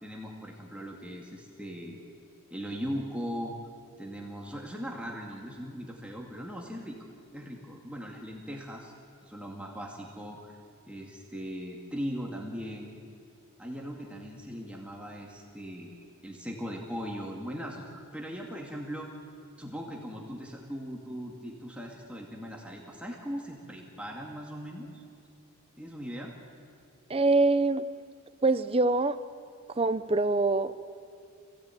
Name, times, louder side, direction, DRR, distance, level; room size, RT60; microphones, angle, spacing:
voice 1, 0.0-2.0 2.5-3.6 4.0-7.0 7.3-8.9 9.2-10.6 10.9-13.0 13.6-19.1 19.6-25.0 25.8-26.4, equal, 5° right, -1 dB, 2.1 m, -39 dB
voice 2, 27.1-27.9 28.4-29.2 29.8-30.8, right 3 dB, 25° right, 11 dB, 0.7 m, -24 dB
26.0 x 17.0 x 9.1 m, 2.4 s
head